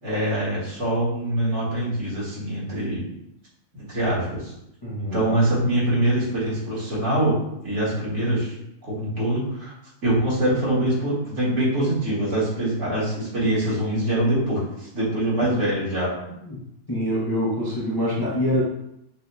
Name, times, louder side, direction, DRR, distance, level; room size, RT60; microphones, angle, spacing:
voice 1, 0.0-3.0 3.7-4.5 5.1-7.3 7.6-8.6 8.8-9.7 10.0-16.1, right 1 dB, 65° right, -8 dB, 2.0 m, -24 dB
voice 2, 4.8-5.2 16.4-16.6 16.9-18.6, equal, 20° left, -7 dB, 0.7 m, -25 dB
6.7 x 2.7 x 2.2 m, 0.82 s
omnidirectional pair, 1.4 m